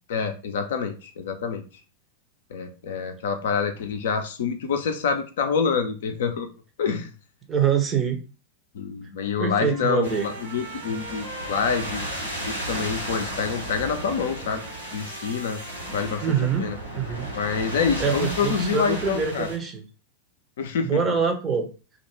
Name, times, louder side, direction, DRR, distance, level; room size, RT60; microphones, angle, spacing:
voice 1, 0.1-1.6 2.5-6.5 6.8-7.1 8.7-12.1 12.4-14.7 14.9-15.6 15.9-16.2 16.6-16.8 17.3-19.5 20.6-21.0, left 6 dB, 60° left, 6 dB, 0.4 m, -27 dB
voice 2, 7.5-8.2 9.4-10.3 16.2-16.6 16.9-17.3 18.0-19.8 20.8-21.7, right 6 dB, 20° right, 4 dB, 0.6 m, -24 dB
Trumpet, 9.4-16.8, right 2 dB, 60° right, 0.7 m, -44 dB
sound 1, 10.0-19.6, right 1 dB, 90° right, 0.9 m, -34 dB
2.4 x 2.1 x 3.0 m, 0.34 s
figure-of-eight pair, 90°, 0 cm